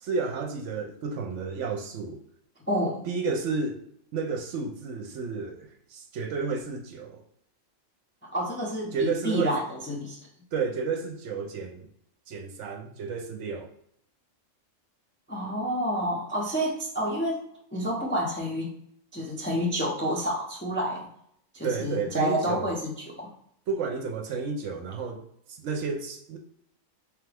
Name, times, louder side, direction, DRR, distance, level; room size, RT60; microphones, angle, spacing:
voice 1, 0.0-2.2 3.1-3.8 4.1-7.2 8.9-9.6 10.5-11.9 12.3-13.7 21.6-22.7 23.7-25.2 25.5-26.4, right 4 dB, 70° right, 4 dB, 0.9 m, -31 dB
voice 2, 2.7-3.1 8.2-10.2 15.3-17.4 17.7-18.7 19.1-21.1 21.5-22.9 23.2-23.3, equal, 15° left, -2 dB, 0.4 m, -29 dB
3.5 x 3.3 x 3.3 m, 0.70 s
omnidirectional pair, 1.4 m